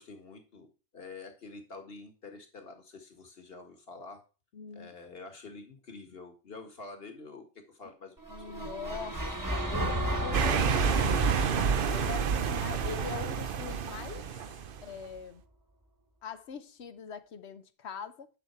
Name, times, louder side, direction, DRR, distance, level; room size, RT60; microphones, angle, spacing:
voice 1, 0.0-4.2 4.8-8.5, left 3 dB, 60° left, 1.9 m, -47 dB
voice 2, 4.5-4.9 8.3-14.2 14.8-15.4 16.2-18.3, left 7 dB, 75° left, 1.1 m, -43 dB
sound 1, 8.2-14.4, right 1 dB, 15° right, 1.2 m, -34 dB
sound 2, 10.3-14.8, right 7 dB, 55° right, 0.8 m, -29 dB
10.5 x 6.2 x 4.4 m
omnidirectional pair, 1.2 m